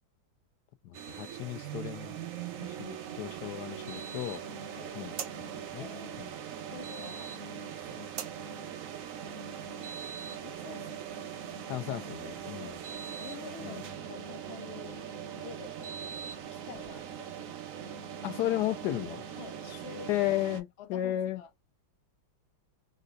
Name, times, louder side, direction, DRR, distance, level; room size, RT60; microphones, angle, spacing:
voice 1, 0.8-2.2 2.5-4.4 4.9-5.2 5.7-5.9 6.2-6.3 7.9-8.1 11.7-12.8 13.6-13.9 18.2-19.2 20.1-21.4, left 14 dB, 70° left, 1.1 m, -34 dB
sound 1, 0.9-20.6, right 8 dB, 70° right, 0.7 m, -41 dB
voice 2, 5.7-6.2 6.7-7.8 8.4-8.8 9.9-11.0 12.6-12.8 13.2-15.0 15.4-17.3 18.5-18.6 19.3-20.1 20.8-21.5, left 6 dB, 90° left, 0.5 m, -49 dB
3.9 x 2.1 x 2.4 m
omnidirectional pair, 2.1 m